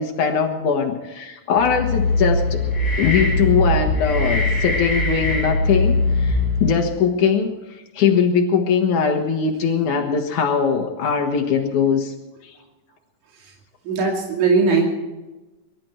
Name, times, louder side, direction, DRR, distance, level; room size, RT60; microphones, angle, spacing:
voice 1, 0.0-2.6 3.0-12.1 12.4-12.5, left 6 dB, 75° left, 4 dB, 2.9 m, -21 dB
sound 1, 1.6-6.9, left 2 dB, 15° left, 5.4 m, -21 dB
voice 2, 13.9-14.8, right 4 dB, 75° right, 0 dB, 3.8 m, -19 dB
24.0 x 12.5 x 4.4 m, 1.1 s
omnidirectional pair, 3.5 m